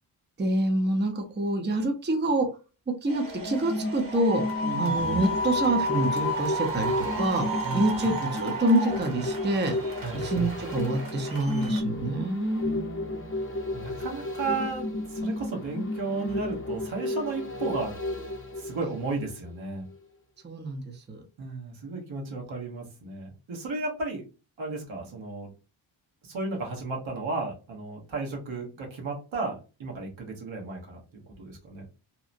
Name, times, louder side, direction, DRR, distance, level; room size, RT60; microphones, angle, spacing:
voice 1, 0.4-2.5 3.0-4.4 4.8-7.4 7.7-9.7 10.1-12.9 20.4-20.8 21.1-21.2, right 1 dB, 20° right, 3 dB, 0.6 m, -27 dB
sound 1, 3.1-11.8, equal, 45° right, 1.1 m, -32 dB
sound 2, 3.3-19.6 19.9-20.0, left 2 dB, 25° left, 0.7 m, -33 dB
voice 2, 4.6-5.0 7.6-8.1 10.0-10.2 12.6-13.3 13.7-17.9 18.5-19.8 21.4-24.2 24.6-25.5 26.2-31.9, right 3 dB, 70° right, -1 dB, 1.0 m, -34 dB
2.8 x 2.0 x 2.5 m, 0.33 s
cardioid pair, 65°, 48 cm